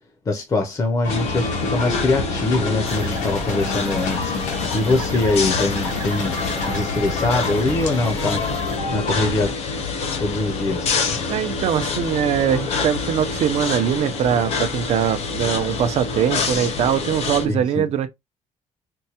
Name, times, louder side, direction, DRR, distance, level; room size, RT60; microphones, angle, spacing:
voice 1, 0.3-6.4 6.7-8.4 8.9-9.5 10.2-10.9 17.4-17.9, left 2 dB, 25° left, 0.5 m, -23 dB
sound 1, 1.0-9.5, left 4 dB, 80° left, 1.1 m, -27 dB
sound 2, 1.1-17.5, left 4 dB, 55° left, 0.8 m, -27 dB
sound 3, 2.8-8.8, right 10 dB, 85° right, 0.9 m, -40 dB
voice 2, 11.3-18.1, right 9 dB, 55° right, 0.6 m, -22 dB
4.5 x 2.1 x 2.8 m
cardioid pair, 150°, 13 cm